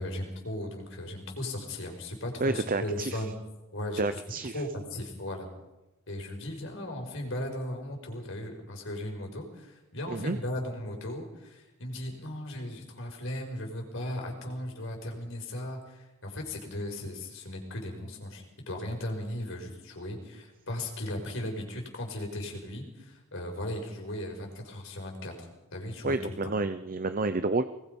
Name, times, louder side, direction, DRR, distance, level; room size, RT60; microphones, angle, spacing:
voice 1, 0.0-3.3 3.7-4.2 4.5-5.5 6.1-26.5, left 1 dB, 60° left, 3 dB, 5.4 m, -37 dB
voice 2, 2.4-3.2 4.0-4.5 10.1-10.4 26.0-27.6, right 3 dB, 40° right, 10 dB, 0.7 m, -29 dB
24.5 x 20.5 x 5.5 m, 1.0 s
head